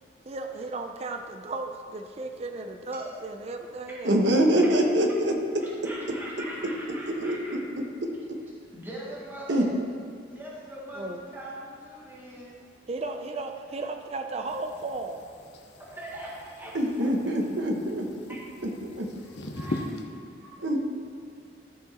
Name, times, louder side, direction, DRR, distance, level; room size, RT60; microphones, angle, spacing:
voice 1, 0.3-4.2 11.0-11.2 12.9-15.2, right 3 dB, 35° right, 5 dB, 0.5 m, -35 dB
voice 2, 4.0-5.3 7.2-7.3 9.5-9.6 16.7-18.1 18.8-19.1 20.6-20.8, right 1 dB, 85° right, 2 dB, 1.2 m, -23 dB
voice 3, 5.6-7.5 8.7-9.7 10.3-12.5 15.9-17.1 18.3-18.4 19.2-20.6, right 1 dB, 10° right, -7 dB, 1.7 m, -41 dB
sound 1, 14.5-20.0, left 2 dB, 70° left, 0.8 m, -40 dB
13.5 x 6.0 x 4.2 m, 2.4 s
head